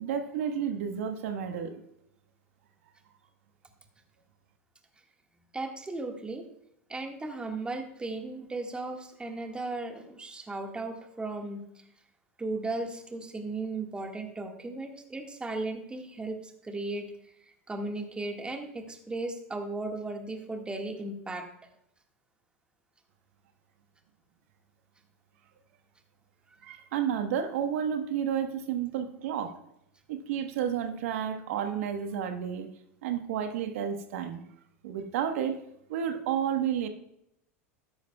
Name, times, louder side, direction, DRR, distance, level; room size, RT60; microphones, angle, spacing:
voice 1, 0.0-1.7 26.6-29.6 30.1-32.7 33.0-34.4 34.8-35.6 35.9-36.9, right 8 dB, 70° right, 6 dB, 1.2 m, -31 dB
voice 2, 5.5-6.5 6.9-11.8 12.4-17.1 17.4-21.5, right 2 dB, 15° right, 3 dB, 1.7 m, -36 dB
13.0 x 11.0 x 2.3 m, 0.77 s
hypercardioid pair, 100°, 8 cm